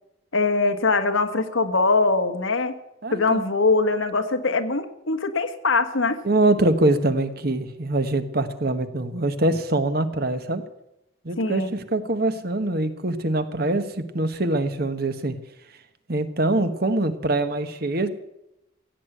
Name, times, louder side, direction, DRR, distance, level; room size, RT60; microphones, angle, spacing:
voice 1, 0.3-2.7 3.1-6.2 11.4-11.7, left 3 dB, 90° left, 8 dB, 1.5 m, -22 dB
voice 2, 3.0-3.4 6.2-10.6 11.2-15.3 16.1-18.1, right 2 dB, 50° right, 10 dB, 1.3 m, -24 dB
16.0 x 8.4 x 9.0 m, 0.86 s
head